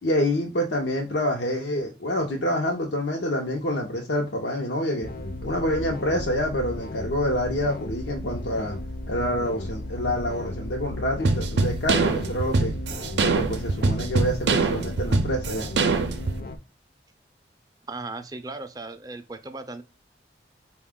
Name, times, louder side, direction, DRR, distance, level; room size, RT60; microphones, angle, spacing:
voice 1, 0.0-5.1 5.4-8.8 9.1-12.7 13.2-15.7, left 1 dB, 90° left, 0 dB, 0.7 m, -27 dB
sound 1, 5.0-16.6, left 1 dB, 55° left, 0.5 m, -35 dB
sound 2, 11.2-16.4, right 3 dB, 85° right, 0.5 m, -24 dB
voice 2, 17.9-19.8, right 3 dB, 20° right, 8 dB, 0.4 m, -37 dB
4.9 x 2.3 x 3.6 m, 0.30 s
head